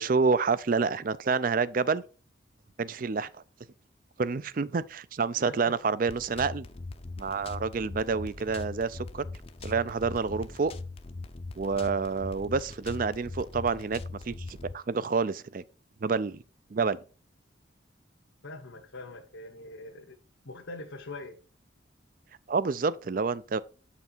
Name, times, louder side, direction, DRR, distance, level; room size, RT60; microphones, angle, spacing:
voice 1, 0.0-2.0 2.8-3.4 4.2-6.7 7.2-9.3 9.6-10.7 11.6-15.6 16.0-16.4 16.7-17.0 22.5-23.6, right 4 dB, 45° right, 0.4 m, -28 dB
sound 1, 6.1-14.7, left 3 dB, 30° left, 0.5 m, -41 dB
voice 2, 18.4-20.2 20.4-21.4, left 2 dB, 90° left, 1.2 m, -43 dB
8.0 x 5.8 x 4.4 m
head